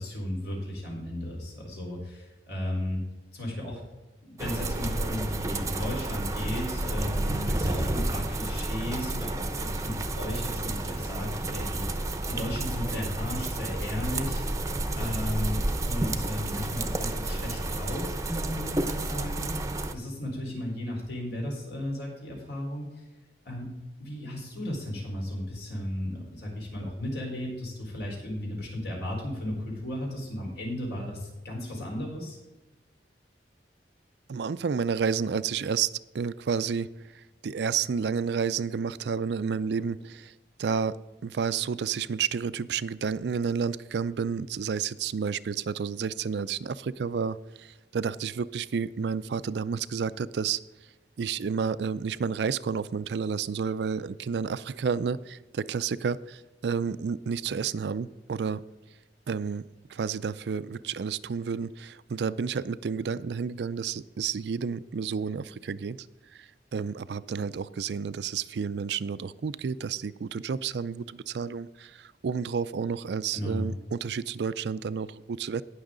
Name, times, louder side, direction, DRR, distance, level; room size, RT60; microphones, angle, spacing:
voice 1, 0.0-3.0 3.3-3.8 4.2-14.4 15.0-19.5 19.9-23.1 23.4-23.7 24.0-32.4 73.3-73.7, left 1 dB, 70° left, -1 dB, 4.2 m, -35 dB
sound 1, 4.4-19.9, right 2 dB, 20° right, 0.7 m, -31 dB
voice 2, 34.3-36.9 37.4-40.3 40.6-41.0 41.2-50.6 51.2-58.6 59.3-59.6 59.9-66.1 66.3-75.6, right 6 dB, 75° right, 16 dB, 0.4 m, -30 dB
18.5 x 6.4 x 3.8 m, 1.1 s
head